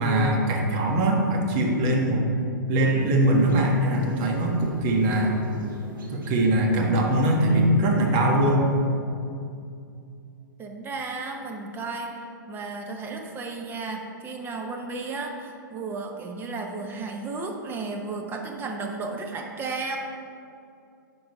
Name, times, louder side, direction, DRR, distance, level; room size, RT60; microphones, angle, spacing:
voice 1, 0.0-2.3 2.7-5.4 6.1-8.8, right 1 dB, 40° right, 0 dB, 1.4 m, -22 dB
sound 1, 2.8-8.5, right 1 dB, 80° right, 1.7 m, -40 dB
voice 2, 10.6-12.1 12.5-20.0, right 3 dB, 20° right, 2 dB, 0.9 m, -33 dB
10.5 x 3.9 x 5.3 m, 2.5 s
hypercardioid pair, 125°, 11 cm